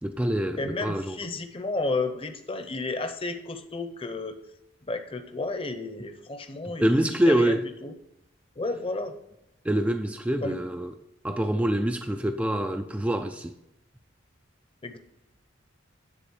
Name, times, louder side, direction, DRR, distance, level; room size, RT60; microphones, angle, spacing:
voice 1, 0.0-1.2 6.8-7.7 9.6-10.9 11.2-13.5, right 1 dB, 5° right, 0.3 m, -25 dB
voice 2, 0.6-4.4 4.8-7.5 7.8-7.9 8.6-9.1 10.4-10.6 14.8-15.0, left 3 dB, 25° left, 0.7 m, -32 dB
9.8 x 4.0 x 6.7 m
head